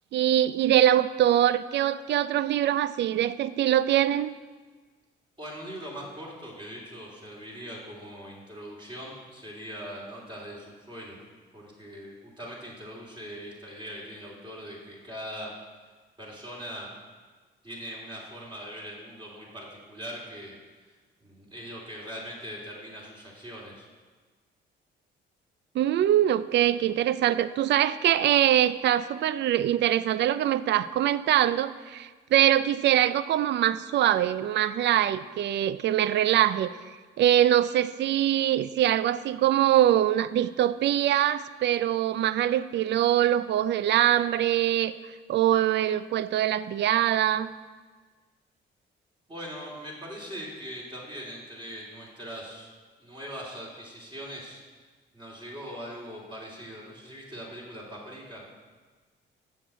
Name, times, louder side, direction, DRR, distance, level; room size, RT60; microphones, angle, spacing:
voice 1, 0.1-4.3 25.7-36.7 37.2-44.9 45.3-47.5, right 12 dB, 60° right, 15 dB, 0.4 m, -23 dB
voice 2, 5.4-11.2 11.5-15.5 16.2-16.9 17.6-20.6 21.2-23.9 49.3-52.7 53.0-54.6 55.1-58.4, equal, 25° right, -4 dB, 3.2 m, -41 dB
7.4 x 6.5 x 7.7 m, 1.4 s
cardioid pair, 90°, 20 cm